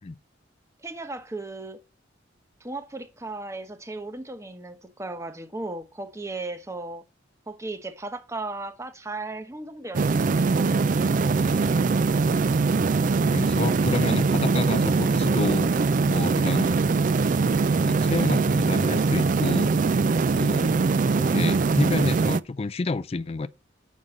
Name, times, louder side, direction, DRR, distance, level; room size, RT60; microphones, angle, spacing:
voice 1, 0.8-1.8 2.6-7.0 7.5-10.3, right 2 dB, 15° right, 1.0 m, -36 dB
sound 1, 9.9-22.4, right 4 dB, 40° right, 0.3 m, -22 dB
voice 2, 11.4-12.2 13.2-15.7 16.1-16.8 17.8-19.7 20.3-20.8 21.1-23.5, left 3 dB, 30° left, 0.4 m, -30 dB
7.4 x 5.5 x 6.4 m
head